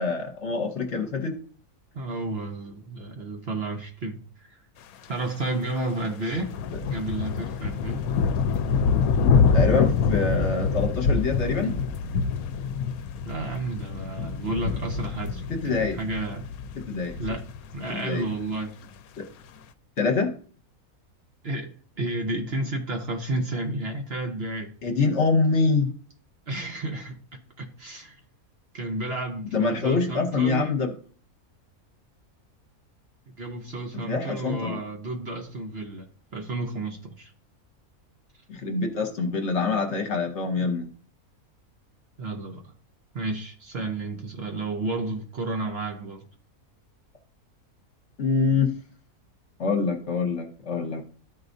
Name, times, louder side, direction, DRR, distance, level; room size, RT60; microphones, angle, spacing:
voice 1, 0.0-1.4 9.5-11.8 15.5-16.0 16.8-17.1 17.9-18.2 19.2-19.3 20.0-20.3 24.8-25.9 29.5-30.9 33.9-34.8 38.5-40.9 48.2-48.7 49.6-51.0, left 4 dB, 55° left, 1.2 m, -25 dB
voice 2, 1.9-4.6 5.1-6.6 6.9-8.1 13.2-15.4 15.7-16.5 17.2-17.4 17.7-18.7 21.4-24.7 26.5-28.2 28.7-30.8 33.4-37.3 42.2-42.7 43.1-46.3, right 2 dB, 45° right, 1.1 m, -32 dB
sound 1, 6.3-18.2, left 5 dB, 75° left, 1.0 m, -25 dB
13.0 x 4.8 x 2.6 m
omnidirectional pair, 1.6 m